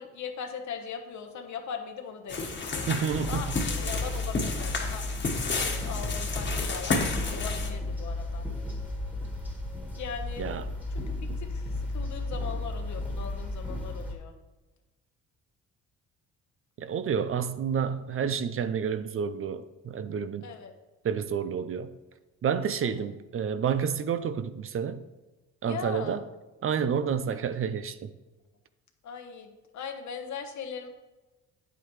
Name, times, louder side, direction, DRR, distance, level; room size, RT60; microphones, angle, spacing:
voice 1, 0.0-2.8 3.3-5.0 5.6-8.4 9.9-10.5 10.9-14.3 20.4-20.7 25.6-26.2 27.3-27.4 29.0-30.9, left 6 dB, 70° left, 1.3 m, -39 dB
sound 1, 2.3-7.7, left 3 dB, 40° left, 1.5 m, -31 dB
voice 2, 2.9-3.5 10.4-10.7 11.3-11.4 16.8-20.5 21.0-21.9 22.4-25.0 25.6-26.2 26.6-28.1, right 7 dB, 45° right, 0.6 m, -29 dB
sound 2, 3.1-14.1, left 2 dB, 5° right, 1.8 m, -34 dB
8.9 x 7.8 x 3.2 m
cardioid pair, 90°, 30 cm